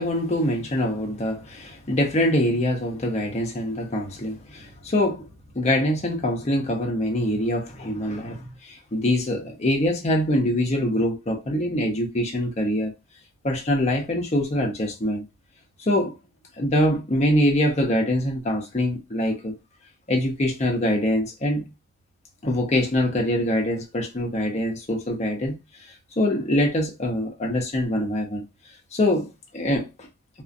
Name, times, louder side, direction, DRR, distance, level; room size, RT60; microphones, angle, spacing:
voice 1, 0.0-5.3 5.5-12.9 13.4-15.2 15.9-16.2 16.6-19.6 20.1-21.7 22.4-25.6 26.2-28.4 28.9-29.3 29.5-29.9, left 1 dB, 30° left, 0.6 m, -24 dB
2.4 x 2.1 x 2.4 m
head